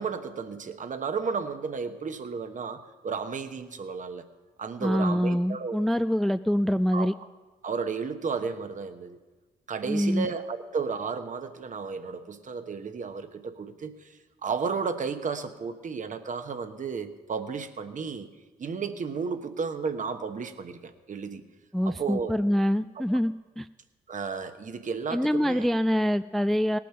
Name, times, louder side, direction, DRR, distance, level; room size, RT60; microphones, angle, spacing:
voice 1, 0.0-4.2 4.6-5.8 6.9-7.1 7.6-9.2 9.7-14.1 14.4-18.3 18.6-21.4 21.9-22.3 24.1-25.7, right 5 dB, 45° right, 8 dB, 1.1 m, -33 dB
voice 2, 4.8-7.1 9.9-10.3 21.7-23.7 25.1-26.8, equal, ahead, 12 dB, 0.3 m, -25 dB
18.5 x 6.2 x 5.9 m, 1.3 s
supercardioid pair, 55°, 18 cm